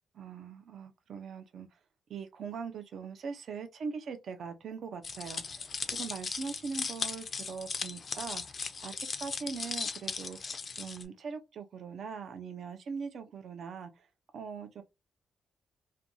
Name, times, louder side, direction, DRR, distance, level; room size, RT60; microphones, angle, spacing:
voice 1, 0.1-1.8 2.1-14.1 14.3-14.8, right 5 dB, 60° right, 0.5 m, -41 dB
sound 1, 5.0-11.0, left 5 dB, 40° left, 0.4 m, -37 dB
2.5 x 2.2 x 2.9 m
cardioid pair, 115°, 0 cm